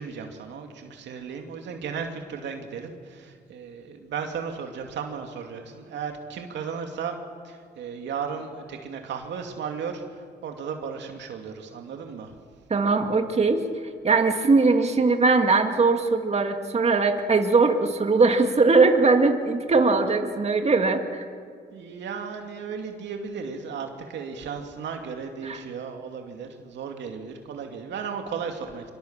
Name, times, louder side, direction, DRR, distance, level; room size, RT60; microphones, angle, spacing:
voice 1, 0.0-7.2 7.4-12.3 21.7-28.9, right 6 dB, 85° right, 4 dB, 2.5 m, -35 dB
voice 2, 12.7-13.6 14.0-21.2 25.4-25.6, right 3 dB, 35° right, 5 dB, 2.2 m, -20 dB
25.5 x 24.5 x 7.4 m, 2.1 s
cardioid pair, 80°, 18 cm